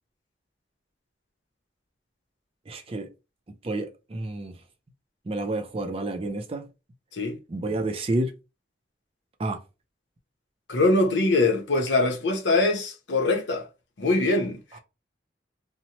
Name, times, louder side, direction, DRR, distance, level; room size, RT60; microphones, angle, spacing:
voice 1, 2.7-3.1 3.6-4.6 5.2-6.7 7.5-8.3 9.4-9.6 14.7-14.8, right 2 dB, 30° right, 0.4 m, -30 dB
voice 2, 10.7-13.7 14.0-14.8, left 2 dB, 85° left, 0.8 m, -23 dB
2.8 x 2.1 x 2.8 m
head